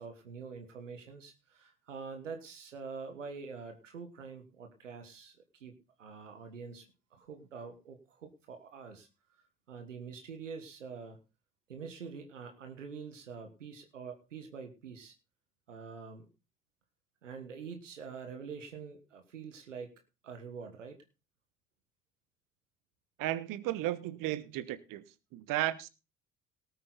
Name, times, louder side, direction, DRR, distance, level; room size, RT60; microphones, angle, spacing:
voice 1, 0.0-6.9 7.1-9.1 9.7-11.2 11.7-15.1 15.7-16.3 17.2-19.9 20.2-21.0, right 5 dB, 90° right, 6 dB, 1.5 m, -45 dB
voice 2, 23.2-25.0 25.3-25.9, right 14 dB, 60° right, 17 dB, 1.2 m, -34 dB
18.0 x 8.7 x 4.0 m, 0.30 s
hypercardioid pair, 55°, 36 cm